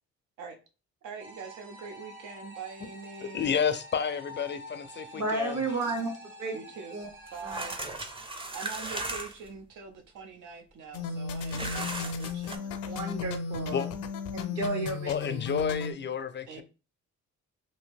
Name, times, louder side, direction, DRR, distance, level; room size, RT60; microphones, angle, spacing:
voice 1, 1.0-3.6 6.5-7.0 7.3-7.8 8.5-13.2 16.5-16.6, right 5 dB, 80° right, 0.6 m, -43 dB
sound 1, 1.2-7.8, equal, 40° right, 1.0 m, -48 dB
voice 2, 3.2-5.6 13.7-13.9 15.1-16.6, left 7 dB, 40° left, 0.4 m, -30 dB
voice 3, 5.1-6.1 6.4-6.6 6.9-7.1 7.4-7.7 12.8-13.9 14.3-15.6, right 2 dB, 65° right, 1.4 m, -32 dB
sound 2, 7.3-9.5 11.4-12.6, right 2 dB, 20° right, 0.5 m, -36 dB
sound 3, 10.9-15.9, left 5 dB, 85° left, 0.5 m, -35 dB
2.7 x 2.6 x 3.4 m
cardioid pair, 90°, 30 cm